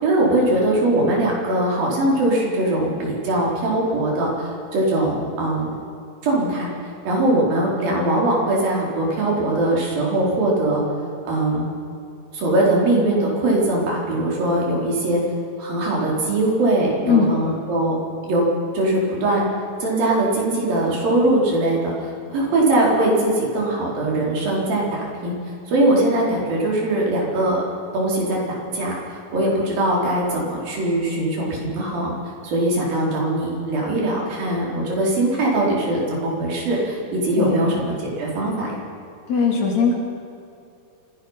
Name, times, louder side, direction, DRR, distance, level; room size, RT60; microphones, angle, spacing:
voice 1, 0.0-5.8 6.2-6.7 7.1-10.8 11.3-11.7 12.3-15.2 15.6-18.0 18.2-18.5 18.7-19.4 19.8-25.3 25.7-27.6 27.9-32.1 32.4-38.8, right 1 dB, 70° right, -3 dB, 5.9 m, -21 dB
voice 2, 17.0-17.4 37.4-37.8 39.3-39.9, left 5 dB, 50° left, -1 dB, 4.3 m, -19 dB
26.0 x 17.5 x 5.8 m, 2.6 s
omnidirectional pair, 4.3 m